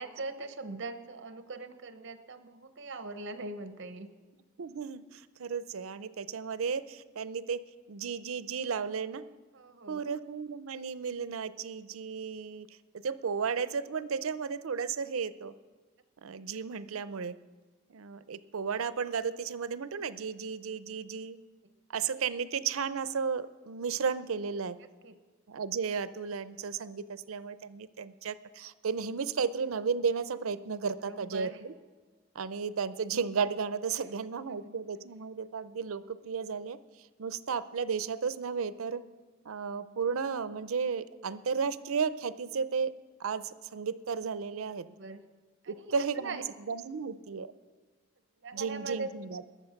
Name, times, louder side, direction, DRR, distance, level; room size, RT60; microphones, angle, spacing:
voice 1, 0.0-4.1 9.5-10.1 25.0-25.1 31.1-31.6 34.5-34.7 44.8-45.2 45.6-46.4 48.4-49.1, right 3 dB, 60° right, 10 dB, 0.9 m, -41 dB
voice 2, 4.6-7.6 7.9-9.3 9.9-15.5 16.2-17.4 17.9-21.4 21.9-24.8 25.5-31.7 32.3-39.0 39.4-42.9 43.2-44.9 45.7-47.5 48.5-49.4, right 6 dB, 85° right, 15 dB, 0.5 m, -34 dB
20.0 x 7.2 x 5.8 m, 1.4 s
head